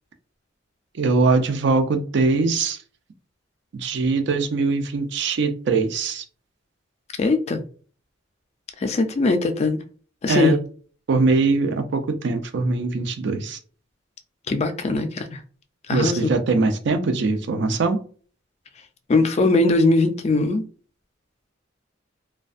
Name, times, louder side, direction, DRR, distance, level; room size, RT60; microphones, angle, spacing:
voice 1, 0.9-2.8 3.7-6.2 10.3-10.6 11.1-13.6 15.9-18.0, right 3 dB, 65° right, 0.4 m, -22 dB
voice 2, 7.2-7.6 8.8-9.8 10.2-10.6 14.5-15.4 15.9-16.4 19.1-20.6, left 3 dB, 35° left, 0.3 m, -20 dB
2.5 x 2.2 x 2.4 m
head